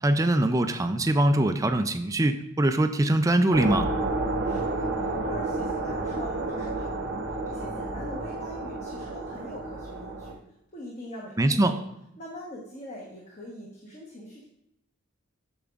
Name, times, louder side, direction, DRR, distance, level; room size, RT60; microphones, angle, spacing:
voice 1, 0.0-3.9 11.4-11.7, right 1 dB, 15° right, 8 dB, 0.4 m, -23 dB
sound 1, 3.5-10.3, right 2 dB, 55° right, 0.8 m, -31 dB
voice 2, 4.4-10.4 10.7-11.8 12.2-14.5, left 1 dB, 35° left, -4 dB, 1.1 m, -43 dB
8.4 x 7.0 x 2.5 m, 0.82 s
head